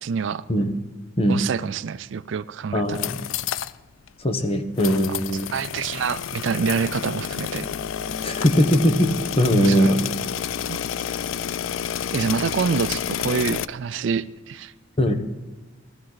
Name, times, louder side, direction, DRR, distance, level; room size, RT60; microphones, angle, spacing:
voice 1, 0.0-0.4 1.3-3.0 5.1-5.2 5.5-7.7 9.6-9.9 10.7-10.8 12.1-14.7, right 6 dB, 70° right, 16 dB, 0.4 m, -26 dB
voice 2, 2.7-3.2 4.2-5.5 8.2-10.0 15.0-15.1, equal, 30° left, 7 dB, 1.0 m, -20 dB
sound 1, 2.8-3.8 4.1-4.2 4.8-13.7, left 9 dB, 85° left, 0.4 m, -29 dB
sound 2, 6.9-14.3, left 3 dB, 65° left, 3.6 m, -46 dB
16.0 x 12.5 x 4.0 m, 1.2 s
head